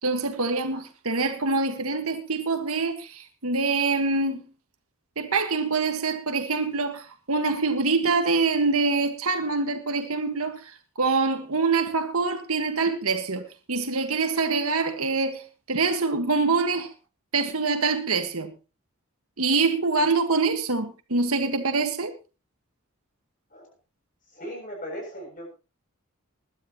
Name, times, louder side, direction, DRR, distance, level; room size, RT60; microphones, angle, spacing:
voice 1, 0.0-4.4 5.2-10.6 11.0-16.9 17.3-18.5 19.4-22.1, right 4 dB, 80° right, 1.6 m, -25 dB
voice 2, 24.3-25.5, equal, 35° left, 7.1 m, -38 dB
21.0 x 12.5 x 3.0 m
head